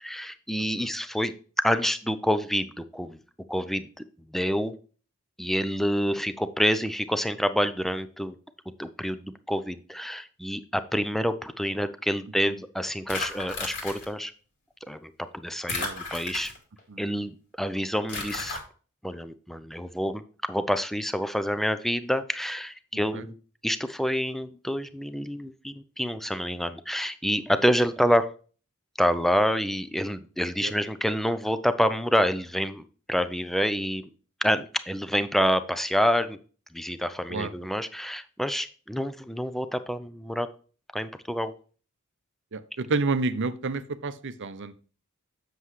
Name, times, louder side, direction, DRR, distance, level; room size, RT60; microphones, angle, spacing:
voice 1, 0.0-3.2 3.5-4.8 5.4-8.4 8.8-14.3 14.9-16.5 17.0-18.6 19.0-23.4 23.6-28.3 29.0-34.1 34.4-36.4 36.7-40.5 40.9-41.5, equal, ahead, 12 dB, 0.5 m, -27 dB
voice 2, 0.6-0.9 12.5-12.6 15.8-16.0 16.9-17.0 22.9-23.2 30.6-30.7 37.3-37.5 42.5-44.7, right 3 dB, 60° right, 12 dB, 0.7 m, -30 dB
sound 1, 13.1-14.1 15.7-16.8 18.1-18.6, left 3 dB, 55° left, 2.5 m, -33 dB
7.7 x 6.9 x 3.1 m, 0.39 s
head